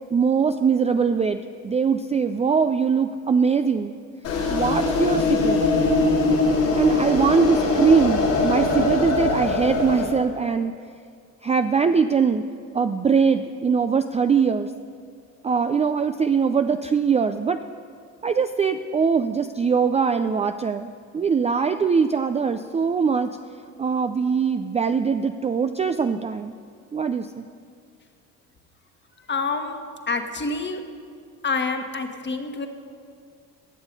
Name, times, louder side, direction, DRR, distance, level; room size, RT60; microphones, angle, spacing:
voice 1, 0.1-3.9 4.5-5.6 6.7-10.7 11.4-12.4 12.7-14.7 15.4-17.6 18.2-23.3 23.8-26.5 26.9-27.4, right 6 dB, 20° right, 8 dB, 0.4 m, -22 dB
sound 1, 4.2-10.0, left 3 dB, 90° left, 2.6 m, -22 dB
voice 2, 29.3-29.8 30.1-30.8 31.4-32.7, left 4 dB, 30° left, 6 dB, 1.4 m, -27 dB
19.0 x 7.1 x 5.3 m, 2.2 s
hypercardioid pair, 70°, 38 cm